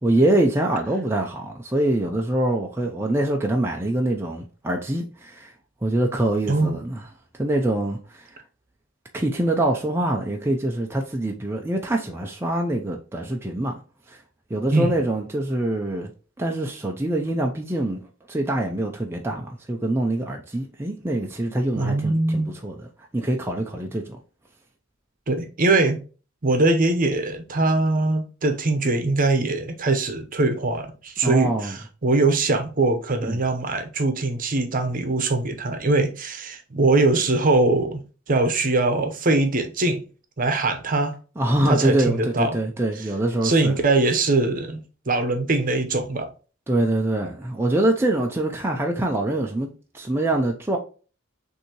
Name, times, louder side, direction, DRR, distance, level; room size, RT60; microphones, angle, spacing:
voice 1, 0.0-5.5 5.8-7.0 7.4-8.4 9.1-13.8 14.1-14.2 14.5-16.1 16.4-18.0 18.3-22.9 23.1-24.2 31.2-31.8 33.3-33.4 41.4-43.7 46.7-49.7 49.9-50.8, right 1 dB, 10° right, 0.5 m, -24 dB
voice 2, 6.5-6.9 14.7-14.9 21.7-22.5 25.3-26.0 26.4-40.0 40.4-41.1 41.6-42.6 43.4-44.8 45.1-46.3, right 2 dB, 45° right, 0.8 m, -22 dB
6.3 x 2.7 x 2.9 m
head